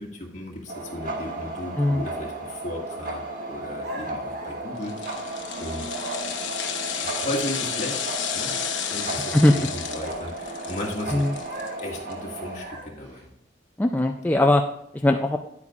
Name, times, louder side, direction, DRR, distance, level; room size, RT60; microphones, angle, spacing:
voice 1, 0.0-5.9 7.0-8.6 8.9-11.2 11.8-13.3, left 1 dB, 40° left, -1 dB, 2.0 m, -35 dB
sound 1, 0.7-12.6, right 2 dB, 50° right, 1.3 m, -34 dB
sound 2, 3.8-5.4 5.8-6.5 11.4-13.2, right 1 dB, 70° right, 2.3 m, -40 dB
sound 3, 4.8-12.1 12.5-12.6, left 8 dB, 90° left, 1.0 m, -32 dB
voice 2, 13.8-14.6 14.9-15.4, left 1 dB, 10° left, 3 dB, 0.3 m, -20 dB
10.0 x 8.3 x 2.4 m, 0.80 s
head